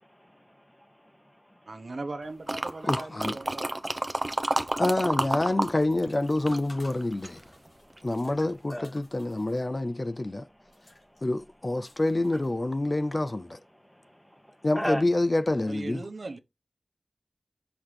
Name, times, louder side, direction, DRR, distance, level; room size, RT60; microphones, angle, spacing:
voice 1, 0.0-2.0 3.4-4.8 7.0-8.3 8.7-9.0 9.3-11.3 11.9-12.0 12.3-12.4 13.4-15.0, equal, 10° left, 1.4 m, -42 dB
voice 2, 1.7-3.8 15.7-16.4, right 2 dB, 75° right, 0.9 m, -38 dB
sound 1, 2.5-5.7 6.0-7.4 8.0-8.1, right 1 dB, 35° right, 0.7 m, -29 dB
voice 3, 2.8-3.3 4.8-7.4 8.0-10.5 11.2-13.6 14.6-16.0, left 2 dB, 40° left, 0.4 m, -27 dB
sound 2, 4.5-13.0, left 1 dB, 85° left, 2.7 m, -56 dB
6.0 x 5.8 x 3.3 m
wide cardioid pair, 55°, 0 cm